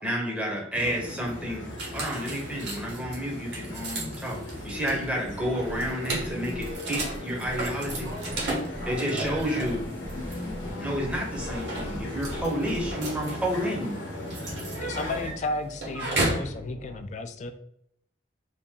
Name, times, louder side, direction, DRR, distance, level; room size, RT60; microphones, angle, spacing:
voice 1, 0.0-1.7 1.9-8.1 8.9-9.9 10.8-14.0, equal, 5° right, -1 dB, 0.7 m, -30 dB
sound 1, 0.7-15.3, left 1 dB, 80° left, 0.8 m, -38 dB
sound 2, 1.8-16.5, right 2 dB, 65° right, 1.1 m, -35 dB
sound 3, 4.6-17.0, equal, 50° right, 0.8 m, -43 dB
voice 2, 7.6-9.5 11.7-14.4 16.2-16.7, equal, 90° right, -3 dB, 1.2 m, -47 dB
voice 3, 14.8-17.5, left 2 dB, 40° left, 8 dB, 0.3 m, -33 dB
2.8 x 2.5 x 3.5 m, 0.74 s
head